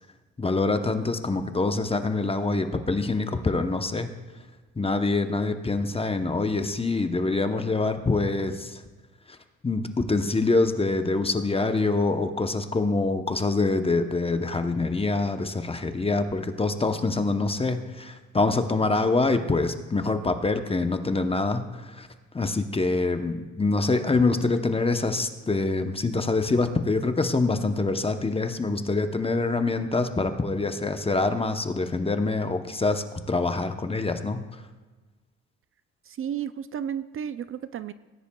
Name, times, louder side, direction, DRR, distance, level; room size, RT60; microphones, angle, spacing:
voice 1, 0.4-4.1 4.8-8.8 9.6-22.1 22.3-34.4, left 3 dB, 20° left, 7 dB, 0.8 m, -25 dB
voice 2, 36.1-37.9, right 9 dB, 45° right, 14 dB, 0.4 m, -32 dB
18.0 x 10.0 x 2.3 m, 1.3 s
cardioid pair, 90°, 30 cm